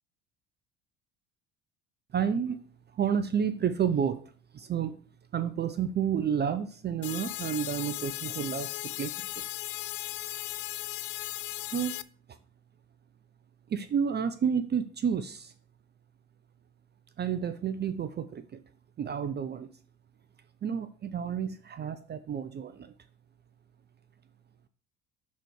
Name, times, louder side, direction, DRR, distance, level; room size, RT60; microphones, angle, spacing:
voice 1, 2.1-2.6 2.9-4.2 4.5-5.0 5.3-9.4 11.7-12.0 13.7-15.5 17.2-18.6 19.0-19.7 20.6-22.9, right 7 dB, 25° right, 11 dB, 0.6 m, -30 dB
sound 1, 7.0-12.0, left 18 dB, 65° left, 0.5 m, -37 dB
6.3 x 4.1 x 6.3 m, 0.42 s
hypercardioid pair, 65°, 38 cm